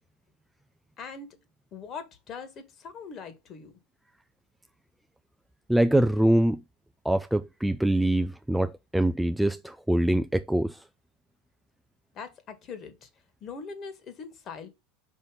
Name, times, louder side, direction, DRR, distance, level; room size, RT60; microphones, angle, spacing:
voice 1, 1.0-1.4 1.7-3.7 12.2-13.1 13.4-14.7, left 5 dB, 35° left, 1.9 m, -41 dB
voice 2, 5.7-6.6 7.0-10.8, right 1 dB, 5° right, 0.4 m, -24 dB
5.6 x 5.3 x 5.2 m
figure-of-eight pair, 80°, 0 cm